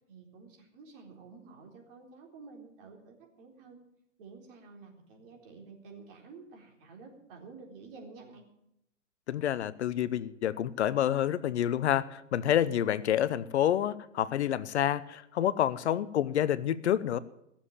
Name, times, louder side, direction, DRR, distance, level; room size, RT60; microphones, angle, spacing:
voice 1, 0.0-3.8 4.2-8.5, right 4 dB, 45° right, 2 dB, 4.0 m, -51 dB
voice 2, 9.3-17.2, left 10 dB, 60° left, 16 dB, 0.8 m, -28 dB
17.0 x 7.3 x 8.8 m, 0.78 s
hypercardioid pair, 115°, 37 cm